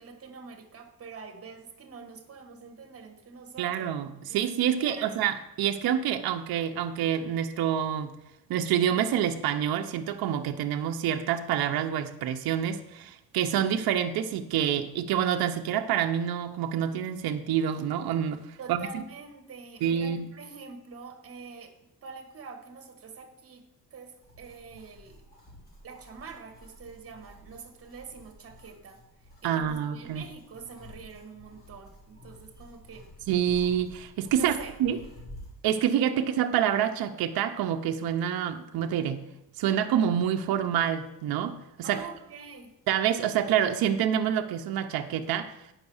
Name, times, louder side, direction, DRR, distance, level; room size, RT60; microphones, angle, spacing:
voice 1, 0.0-3.9 4.3-5.1 18.6-25.2 25.8-33.1 34.3-34.8 41.8-42.7, right 5 dB, 35° right, 5 dB, 1.6 m, -45 dB
voice 2, 3.6-8.2 8.5-19.0 19.8-20.3 29.4-30.2 33.3-34.5 34.8-35.0 35.6-39.2 39.6-42.0 42.9-45.5, right 9 dB, 65° right, 5 dB, 0.9 m, -27 dB
sound 1, 24.2-35.6, left 1 dB, 25° left, 3.5 m, -51 dB
9.3 x 5.9 x 7.1 m, 0.87 s
cardioid pair, 130°, 40 cm